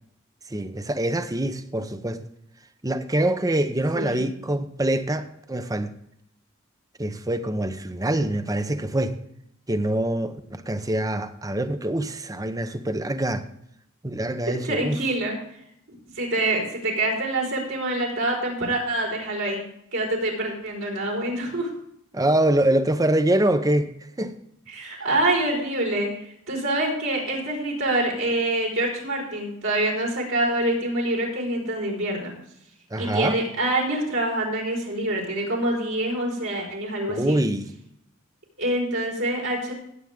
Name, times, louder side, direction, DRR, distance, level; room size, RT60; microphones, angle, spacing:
voice 1, 0.5-2.3 2.8-5.9 7.0-9.2 9.7-13.5 14.0-15.0 22.1-23.9 24.2-24.4 32.9-33.4 37.1-37.7, right 1 dB, 15° right, 0.8 m, -24 dB
voice 2, 3.9-4.2 14.6-15.4 16.1-19.6 19.9-21.7 24.7-26.1 26.5-32.3 33.0-37.4 38.6-39.7, right 1 dB, 70° right, 4.7 m, -26 dB
16.5 x 8.2 x 3.7 m
head